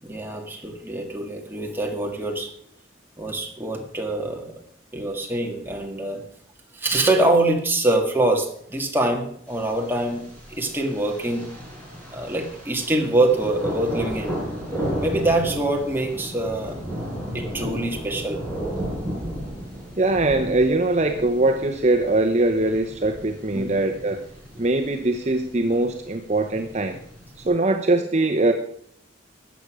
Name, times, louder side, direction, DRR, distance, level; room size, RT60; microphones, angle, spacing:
voice 1, 0.0-2.5 3.2-4.5 4.9-6.2 6.7-11.5 12.1-14.5 15.0-16.8 17.3-18.4 23.5-23.7, right 2 dB, 10° right, 1 dB, 1.9 m, -24 dB
Thunder, 9.5-27.5, equal, 5° left, 4.8 m, -34 dB
voice 2, 20.0-24.2 24.6-27.0 27.4-28.5, right 2 dB, 35° right, 5 dB, 0.8 m, -22 dB
13.5 x 8.5 x 6.2 m, 0.67 s
head